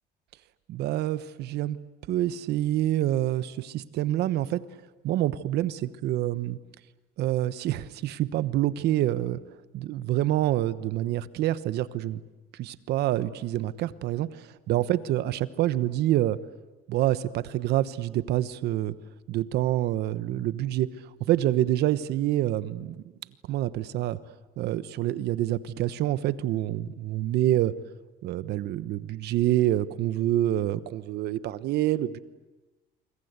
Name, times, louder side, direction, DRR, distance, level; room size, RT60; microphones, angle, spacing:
voice 1, 0.7-1.8 2.1-4.6 5.0-6.6 7.2-9.4 9.7-12.2 12.5-16.4 16.9-18.9 19.3-20.9 21.2-23.0 23.5-24.2 24.6-27.7 28.2-32.2, right 13 dB, 75° right, 15 dB, 1.1 m, -27 dB
27.0 x 24.5 x 8.2 m, 1.1 s
cardioid pair, 110°, 17 cm